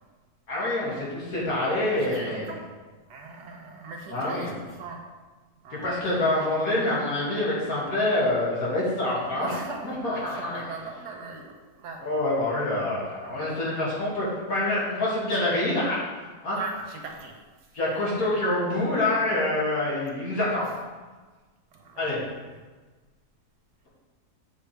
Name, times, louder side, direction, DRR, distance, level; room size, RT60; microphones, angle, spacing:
voice 1, 0.5-2.5 4.1-4.5 5.7-9.5 9.8-10.6 12.0-16.0 16.4-16.6 17.7-20.7 22.0-22.2, left 1 dB, 60° left, -7 dB, 2.8 m, -26 dB
voice 2, 1.9-2.7 3.1-5.0 5.6-6.1 9.2-12.1 13.2-13.5 16.5-17.4 21.7-22.1 22.5-22.7, right 4 dB, 85° right, 2 dB, 1.7 m, -39 dB
8.3 x 6.8 x 3.4 m, 1.3 s
omnidirectional pair, 1.7 m